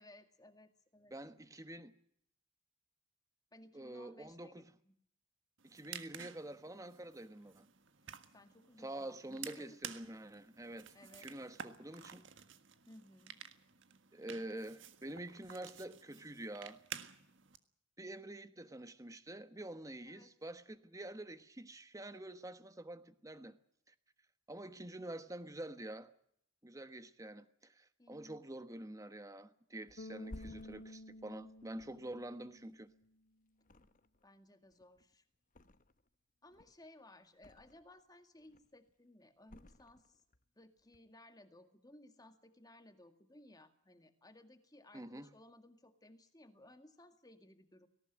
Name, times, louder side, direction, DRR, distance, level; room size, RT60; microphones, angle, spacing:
voice 1, 0.0-1.1 3.5-5.0 8.3-9.8 10.9-11.3 12.9-13.4 20.1-20.3 28.0-28.4 34.2-35.2 36.4-40.2 40.6-47.9, left 1 dB, 20° left, 1.9 m, -60 dB
voice 2, 1.1-1.9 3.7-4.7 5.6-7.7 8.8-12.2 14.1-16.8 18.0-23.6 23.9-24.0 24.5-26.1 26.6-32.9 44.9-45.3, right 1 dB, 15° right, 1.2 m, -47 dB
sound 1, 5.6-17.6, right 8 dB, 60° right, 1.6 m, -52 dB
Thump thud, 29.9-33.2 33.6-34.4 34.7-36.1 36.5-38.0 38.4-38.9 39.4-40.4 40.8-41.0, left 1 dB, 40° left, 1.0 m, -57 dB
Bass guitar, 30.0-33.1, left 1 dB, 65° left, 0.9 m, -52 dB
18.5 x 18.0 x 9.1 m
head